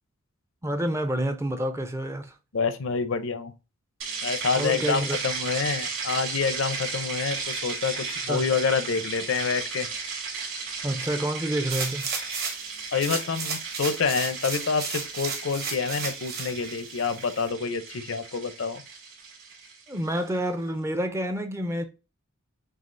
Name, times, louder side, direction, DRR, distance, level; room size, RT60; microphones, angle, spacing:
voice 1, 0.6-2.3 4.6-5.2 8.3-8.5 10.8-12.1 19.9-21.8, right 1 dB, 15° right, 0.4 m, -28 dB
voice 2, 2.5-3.5 4.2-9.9 12.9-18.8, left 5 dB, 65° left, 0.6 m, -27 dB
sound 1, 4.0-20.3, right 5 dB, 65° right, 2.3 m, -35 dB
sound 2, 11.7-12.7 13.0-16.5 17.0-17.1, right 5 dB, 50° right, 1.1 m, -33 dB
6.2 x 2.4 x 2.5 m
head